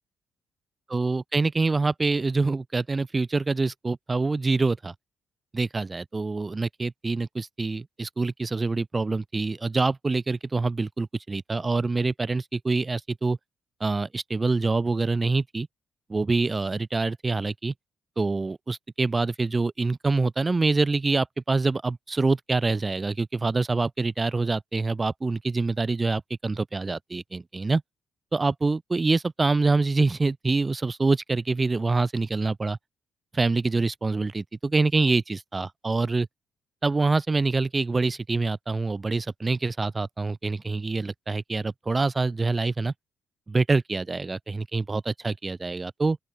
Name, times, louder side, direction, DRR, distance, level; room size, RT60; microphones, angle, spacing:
voice 1, 0.9-4.9 5.5-13.4 13.8-15.7 16.1-17.7 18.2-27.8 28.3-32.8 33.3-36.3 36.8-42.9 43.5-46.2, right 3 dB, 20° right, 1.4 m, -25 dB
open air
cardioid pair, 170°, 0 cm